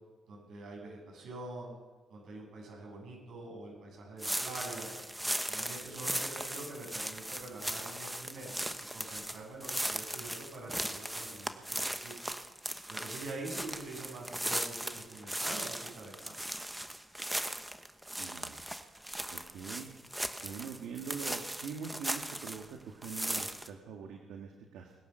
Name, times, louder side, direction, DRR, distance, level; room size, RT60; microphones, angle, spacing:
voice 1, 0.3-1.8 2.1-4.9 5.5-12.1 12.9-16.4, right 2 dB, 70° right, 0 dB, 7.3 m, -45 dB
sound 1, 4.2-22.7 23.0-23.7, right 1 dB, 5° right, 1.1 m, -38 dB
voice 2, 18.2-18.6 19.3-19.9 20.4-24.9, right 6 dB, 85° right, 2 dB, 1.7 m, -43 dB
20.5 x 10.0 x 6.8 m, 1.3 s
cardioid pair, 90°, 0 cm